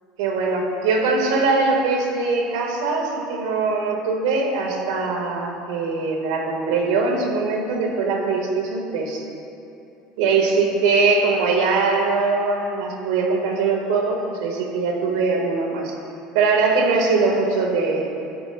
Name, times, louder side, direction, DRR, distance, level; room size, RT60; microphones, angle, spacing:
voice 1, 0.2-9.2 10.2-15.9 16.3-18.1, right 4 dB, 85° right, -1 dB, 4.6 m, -21 dB
24.5 x 14.0 x 3.4 m, 2.8 s
supercardioid pair, 125°, 2 cm